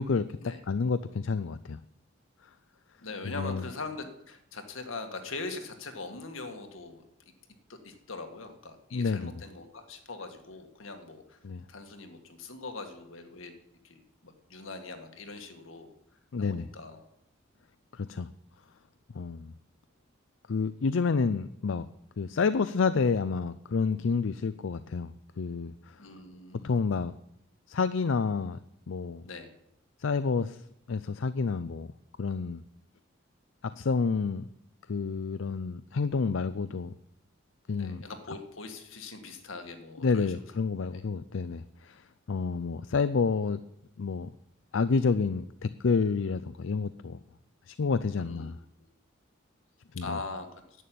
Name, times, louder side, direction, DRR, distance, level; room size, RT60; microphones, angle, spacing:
voice 1, 0.0-0.4 0.7-1.8 3.2-3.7 8.9-9.4 11.4-11.6 16.3-16.7 17.9-18.3 19.1-19.5 20.5-21.9 22.2-26.0 26.5-27.2 27.7-28.6 28.9-29.3 30.0-31.9 32.2-32.6 33.6-34.5 34.9-36.9 37.7-38.0 40.0-43.6 44.0-44.3 44.7-47.2 47.7-48.6 49.9-50.2, left 4 dB, 75° left, 13 dB, 0.5 m, -29 dB
voice 2, 3.0-7.0 7.7-11.4 11.7-13.6 13.8-15.9 16.4-17.1 26.0-26.8 29.2-29.5 37.7-40.4 40.8-41.0 48.2-48.5 50.0-50.6, left 3 dB, 90° left, 5 dB, 1.9 m, -42 dB
11.0 x 8.6 x 9.1 m, 0.79 s
head